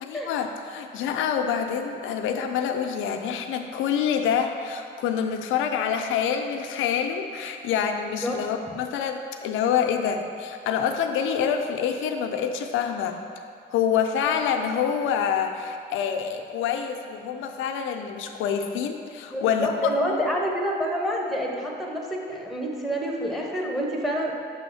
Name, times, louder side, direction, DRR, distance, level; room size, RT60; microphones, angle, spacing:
voice 1, 0.0-13.2 13.7-19.9, left 7 dB, 90° left, 5 dB, 0.5 m, -26 dB
voice 2, 19.3-24.3, equal, ahead, -1 dB, 1.0 m, -28 dB
6.1 x 3.4 x 5.6 m, 2.4 s
cardioid pair, 90°, 20 cm